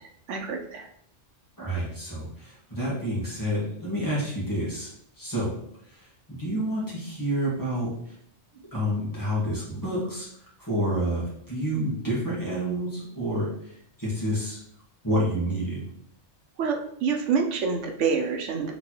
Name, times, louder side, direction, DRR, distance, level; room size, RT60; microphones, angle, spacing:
voice 1, 0.3-0.9 16.6-18.7, right 5 dB, 90° right, 3 dB, 1.0 m, -27 dB
voice 2, 1.6-5.5 5.9-8.1 8.7-10.3 10.6-14.6 15.0-15.8, equal, 15° left, -7 dB, 1.8 m, -29 dB
4.2 x 3.8 x 3.0 m, 0.69 s
omnidirectional pair, 1.2 m